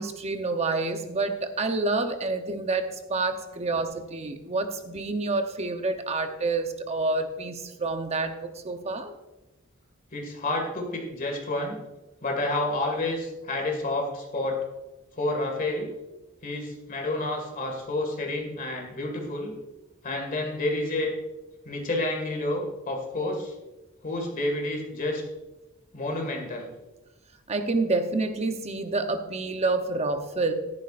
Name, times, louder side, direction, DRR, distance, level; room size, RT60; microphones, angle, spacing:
voice 1, 0.0-9.1 27.5-30.5, right 3 dB, 30° right, 7 dB, 0.8 m, -28 dB
voice 2, 10.1-11.8 12.2-14.6 15.2-15.9 16.4-19.5 20.0-21.1 21.7-23.5 24.0-25.2 25.9-26.7, left 2 dB, 40° left, 1 dB, 2.0 m, -29 dB
14.0 x 10.5 x 2.5 m, 1.0 s
head